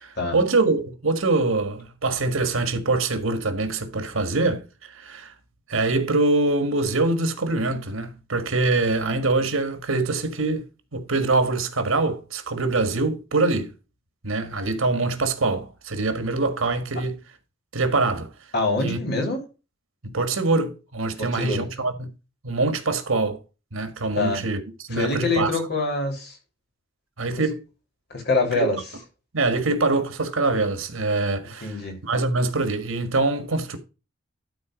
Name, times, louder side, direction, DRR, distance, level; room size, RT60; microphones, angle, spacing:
voice 1, 0.0-5.3 5.7-13.7 14.2-17.2 17.7-18.3 18.8-19.0 20.0-22.1 22.4-23.4 23.7-24.6 24.9-25.5 27.2-27.6 28.6-28.7 29.3-31.8 32.0-33.8, right 3 dB, 90° right, 1.6 m, -24 dB
voice 2, 18.5-19.4 21.2-21.7 24.2-24.4 24.9-26.4 28.1-28.8 31.6-32.0, left 3 dB, 55° left, 3.3 m, -25 dB
12.5 x 4.1 x 5.1 m
head